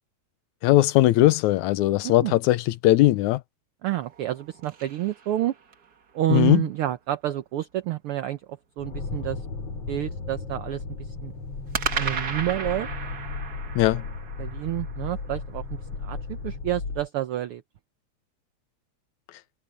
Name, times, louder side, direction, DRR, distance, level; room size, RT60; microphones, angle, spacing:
voice 1, 0.6-3.4 6.3-6.6 13.8-14.0, left 16 dB, 85° left, 2.0 m, -19 dB
voice 2, 2.0-2.4 3.8-5.5 6.1-9.4 9.9-11.3 11.9-12.9 14.4-15.6 16.0-17.6, right 14 dB, 80° right, 1.2 m, -29 dB
sound 1, 4.0-5.9 11.7-16.0, right 6 dB, 45° right, 1.4 m, -35 dB
sound 2, 8.8-17.1, left 4 dB, 55° left, 4.7 m, -35 dB
omnidirectional pair, 3.4 m